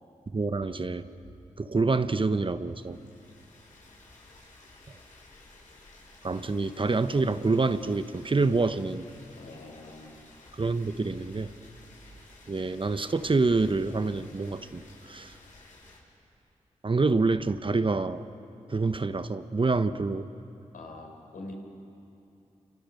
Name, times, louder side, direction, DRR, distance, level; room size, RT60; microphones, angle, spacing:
voice 1, 0.3-1.1 1.6-3.0 6.2-9.1 10.5-11.5 12.5-15.4 16.8-18.2 18.7-20.3, right 3 dB, 40° right, 11 dB, 1.1 m, -27 dB
sound 1, 2.6-16.0, left 2 dB, 65° left, 6.9 m, -54 dB
voice 2, 9.4-10.2 20.7-21.5, left 2 dB, 85° left, 1 dB, 4.4 m, -44 dB
29.5 x 26.0 x 6.5 m, 2.7 s
cardioid pair, 45°, 14 cm